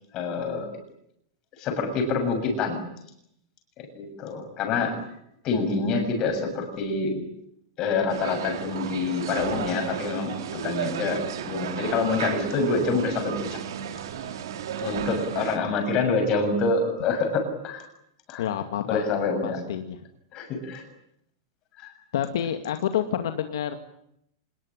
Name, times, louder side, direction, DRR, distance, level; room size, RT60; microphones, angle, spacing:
voice 1, 0.1-0.7 1.6-2.8 3.8-5.0 5.4-7.2 7.8-13.6 14.8-17.9 18.3-18.5 18.9-19.6 20.3-20.8 21.8-21.9, left 4 dB, 25° left, 5 dB, 7.1 m, -26 dB
sound 1, 8.1-15.6, right 9 dB, 70° right, 4.0 m, -33 dB
voice 2, 18.4-19.0 19.4-20.0 22.1-23.8, left 10 dB, 65° left, 7 dB, 2.2 m, -28 dB
26.5 x 20.0 x 10.0 m, 0.75 s
supercardioid pair, 180°, 2 cm